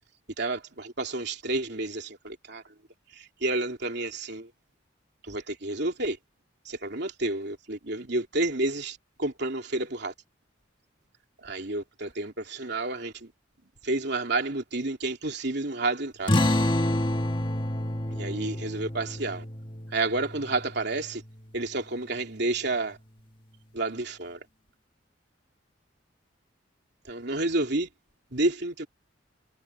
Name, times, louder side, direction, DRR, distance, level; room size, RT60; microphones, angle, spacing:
voice 1, 0.4-2.7 3.1-4.5 5.2-6.2 6.6-10.1 11.4-13.3 13.8-16.3 18.1-19.4 19.9-21.2 21.5-23.0 23.7-24.4 27.0-27.9 28.3-28.9, right 2 dB, 55° right, 3.2 m, -30 dB
sound 1, 16.3-21.3, left 1 dB, 25° left, 1.7 m, -28 dB
head